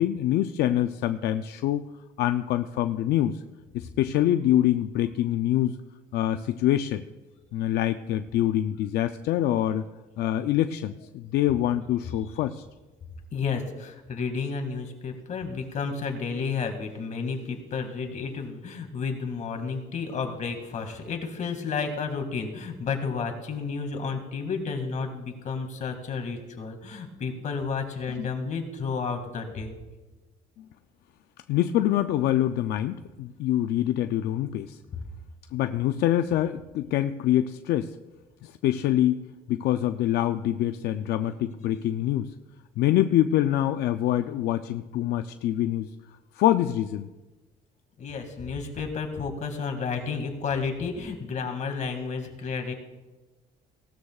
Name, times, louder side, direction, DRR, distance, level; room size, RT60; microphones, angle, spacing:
voice 1, 0.0-1.8 2.2-3.4 3.7-5.8 6.1-7.0 7.5-9.9 10.2-12.6 28.2-28.3 31.5-34.8 35.5-37.9 38.4-39.2 39.5-42.3 42.8-45.9 46.4-47.1, left 12 dB, 75° left, 9 dB, 0.5 m, -25 dB
voice 2, 13.3-29.7 48.0-52.7, left 5 dB, 45° left, 5 dB, 2.2 m, -31 dB
18.0 x 13.0 x 2.4 m, 1.1 s
cardioid pair, 110°, 17 cm